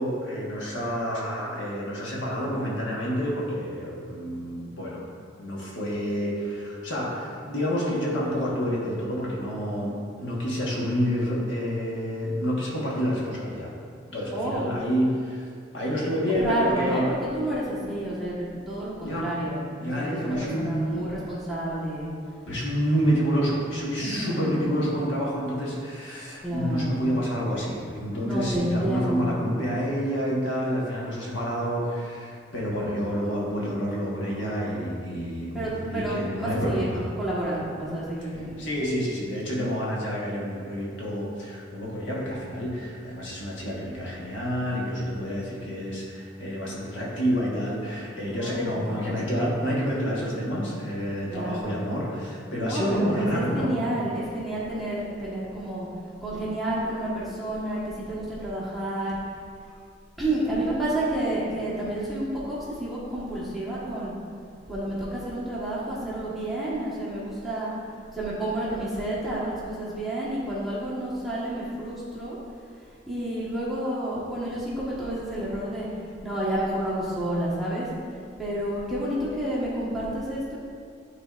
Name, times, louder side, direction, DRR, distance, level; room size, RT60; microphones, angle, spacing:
voice 1, 0.0-5.0 5.4-13.7 14.1-15.5 15.7-17.1 19.0-19.3 19.8-21.0 22.4-37.0 38.3-53.8, equal, 85° left, -5 dB, 1.4 m, -28 dB
voice 2, 14.3-14.7 16.2-22.1 24.0-24.8 26.4-27.1 28.2-29.4 35.5-38.7 48.3-49.1 51.3-51.6 52.6-55.9 56.2-59.4 60.2-64.1 64.7-67.7 68.1-72.4 73.1-75.9 76.2-77.9 78.4-80.6, right 1 dB, ahead, -10 dB, 1.3 m, -30 dB
11.0 x 4.1 x 2.5 m, 2.2 s
head